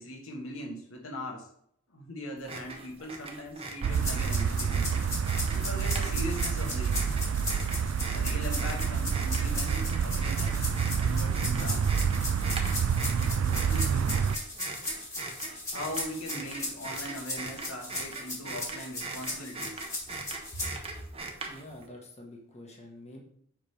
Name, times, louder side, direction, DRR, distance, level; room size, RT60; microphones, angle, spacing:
voice 1, 0.0-1.5 1.9-4.9 5.5-7.1 8.1-10.7 11.0-12.1 13.4-14.2 15.7-19.8 20.5-20.6, equal, 85° left, 1 dB, 1.5 m, -40 dB
sound 1, 2.4-21.8, right 3 dB, 30° right, 1.0 m, -41 dB
sound 2, 3.8-14.4, right 6 dB, 75° right, 0.3 m, -28 dB
sound 3, 3.9-20.7, left 2 dB, 15° left, 1.8 m, -38 dB
voice 2, 21.4-23.2, left 1 dB, 35° left, 0 dB, 1.5 m, -47 dB
7.4 x 3.4 x 5.0 m, 0.68 s
head